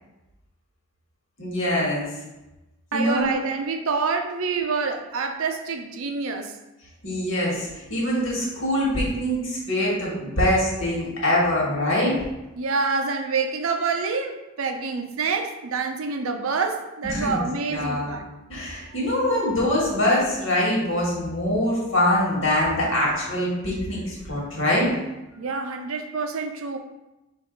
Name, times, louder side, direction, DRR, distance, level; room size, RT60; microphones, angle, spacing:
voice 1, 1.4-2.1 2.9-3.3 7.0-12.2 17.1-17.4 17.7-18.2 18.5-24.9, left 1 dB, 65° left, 1.5 m, -23 dB
voice 2, 2.9-6.6 12.6-18.3 25.4-26.8, right 4 dB, 80° right, 0.5 m, -27 dB
5.3 x 2.6 x 3.8 m
head